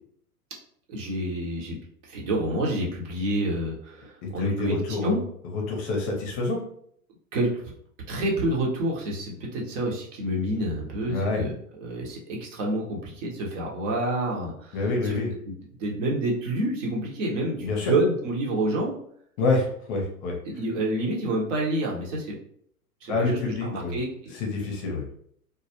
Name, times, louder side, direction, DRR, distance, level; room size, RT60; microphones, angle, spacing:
voice 1, 0.9-1.8 2.1-5.2 7.3-7.5 8.1-11.5 11.8-15.2 15.8-19.0 20.4-22.4 23.0-24.3, right 1 dB, 55° right, -1 dB, 0.8 m, -28 dB
voice 2, 4.4-5.2 5.5-6.6 11.1-11.4 14.7-15.3 17.6-17.9 19.4-20.3 23.1-23.9 24.4-25.0, left 3 dB, 35° left, 0 dB, 0.6 m, -27 dB
2.2 x 2.0 x 2.8 m, 0.66 s
hypercardioid pair, 115°, 45 cm